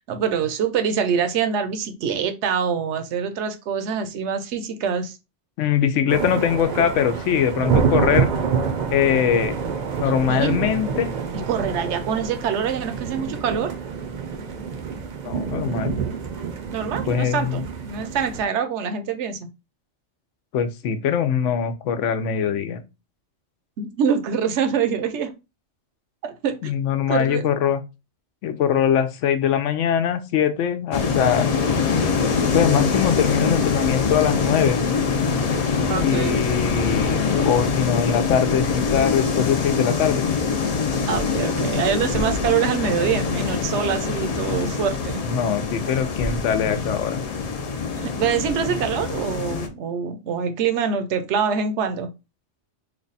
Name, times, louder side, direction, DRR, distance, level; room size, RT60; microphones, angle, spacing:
voice 1, 0.0-5.2 10.3-10.6 11.5-13.7 16.7-19.5 23.8-25.3 26.2-26.7 27.1-27.6 35.9-36.4 41.1-45.2 48.0-52.1, right 7 dB, 75° right, 0.9 m, -25 dB
voice 2, 5.6-8.3 8.9-9.6 9.9-11.1 15.2-16.0 17.1-17.6 20.5-22.8 26.6-27.8 28.4-31.5 32.4-34.8 36.0-40.3 45.2-47.2, left 8 dB, 90° left, 0.9 m, -22 dB
sound 1, 6.1-18.4, right 6 dB, 50° right, 0.6 m, -27 dB
sound 2, 30.9-49.7, left 5 dB, 50° left, 0.4 m, -24 dB
3.3 x 2.2 x 3.9 m
omnidirectional pair, 1.2 m